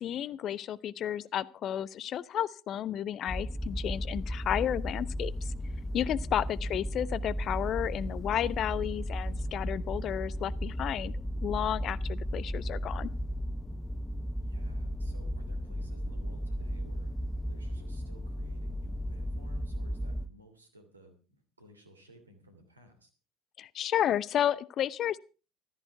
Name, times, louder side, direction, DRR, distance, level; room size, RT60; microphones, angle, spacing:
voice 1, 0.0-5.5 5.9-13.1 23.6-25.2, left 10 dB, 45° left, 21 dB, 0.7 m, -32 dB
sound 1, 3.3-20.3, equal, 5° left, 0.8 m, -35 dB
voice 2, 6.4-6.8 14.4-17.1 17.5-23.1, equal, 85° right, 5 dB, 2.9 m, -57 dB
15.0 x 13.5 x 4.6 m, 0.34 s
figure-of-eight pair, 65°, 0 cm